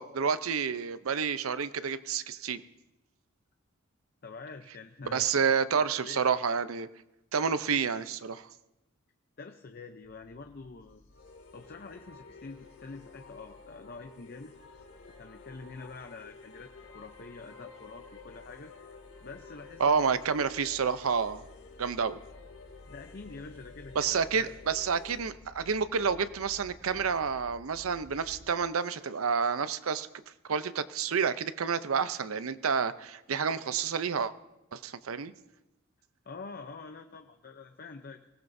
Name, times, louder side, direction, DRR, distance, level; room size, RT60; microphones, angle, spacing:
voice 1, 0.0-2.6 5.1-6.9 7.3-8.5 19.8-21.4 21.8-22.2 24.0-30.1 30.5-34.3 34.7-35.3, right 6 dB, 85° right, 13 dB, 0.6 m, -29 dB
voice 2, 4.2-5.3 5.8-6.2 9.4-11.1 11.5-14.5 15.1-18.7 19.2-20.2 22.9-24.5 36.2-38.4, left 4 dB, 50° left, 6 dB, 0.7 m, -46 dB
sound 1, 10.0-28.5, left 1 dB, 65° left, 1.9 m, -56 dB
sound 2, 11.1-25.3, left 4 dB, 85° left, 2.5 m, -52 dB
24.0 x 17.0 x 2.7 m, 0.93 s
head